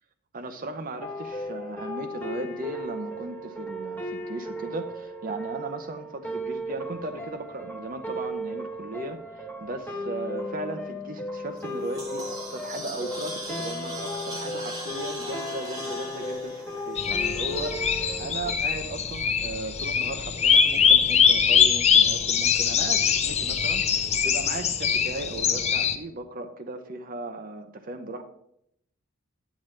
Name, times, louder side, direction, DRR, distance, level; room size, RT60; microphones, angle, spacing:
voice 1, 0.3-28.2, right 2 dB, 40° right, 6 dB, 0.7 m, -37 dB
sound 1, 1.0-18.5, equal, 10° left, 1.0 m, -36 dB
sound 2, 11.6-17.9, right 1 dB, 15° right, 1.5 m, -39 dB
sound 3, 17.0-26.0, left 7 dB, 30° left, 0.6 m, -22 dB
10.0 x 9.3 x 3.2 m, 0.73 s
head